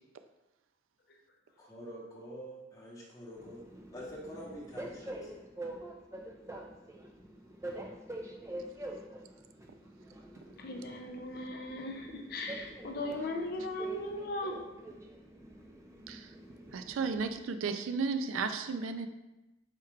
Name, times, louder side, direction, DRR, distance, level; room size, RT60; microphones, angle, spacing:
voice 1, 1.6-3.6 3.9-5.4, equal, 15° left, -4 dB, 0.9 m, -46 dB
Train, 3.4-17.3, right 1 dB, 15° right, 0.3 m, -46 dB
voice 2, 10.6-14.6, left 1 dB, 50° left, 2 dB, 0.5 m, -38 dB
voice 3, 16.7-19.1, right 5 dB, 90° right, 9 dB, 0.4 m, -34 dB
4.5 x 2.4 x 4.4 m, 1.0 s
head